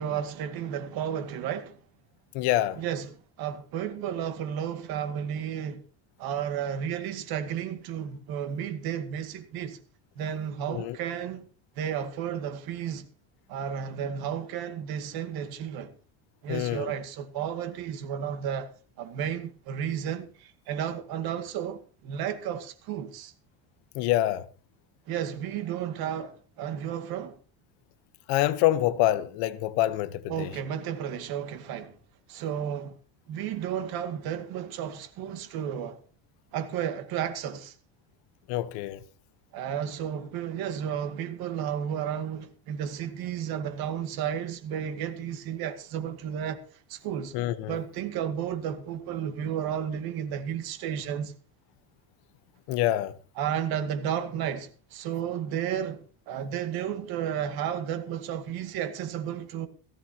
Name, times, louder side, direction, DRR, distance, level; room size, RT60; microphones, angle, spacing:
voice 1, 0.0-1.8 2.8-5.8 6.2-9.8 10.2-11.5 11.8-13.1 13.5-15.9 16.4-18.7 19.0-23.3 25.1-27.4 30.3-32.0 32.3-32.9 33.3-36.0 36.5-37.7 39.5-46.6 46.9-47.3 47.7-51.3 53.4-59.7, right 9 dB, 60° right, 2.3 m, -32 dB
voice 2, 2.3-2.8 10.7-11.0 16.5-16.9 23.9-24.4 28.3-30.5 38.5-39.0 47.3-47.8 52.7-53.1, left 14 dB, 80° left, 1.2 m, -26 dB
18.0 x 15.0 x 2.9 m
cardioid pair, 150°, 40 cm